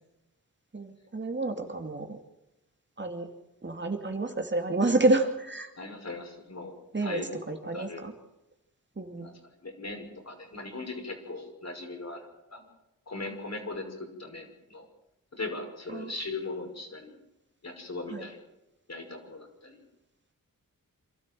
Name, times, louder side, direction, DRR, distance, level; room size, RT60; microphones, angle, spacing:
voice 1, 0.7-2.2 3.0-3.3 3.6-5.7 6.9-8.1 9.0-9.3 15.9-16.1 18.1-18.3, right 2 dB, 35° right, 4 dB, 2.7 m, -29 dB
voice 2, 5.8-6.8 7.0-8.1 9.2-9.3 9.6-12.6 13.1-14.9 15.3-17.2 17.6-18.4 18.9-19.8, left 2 dB, 50° left, 3 dB, 5.7 m, -39 dB
27.5 x 13.0 x 7.7 m, 0.93 s
wide cardioid pair, 70°, 34 cm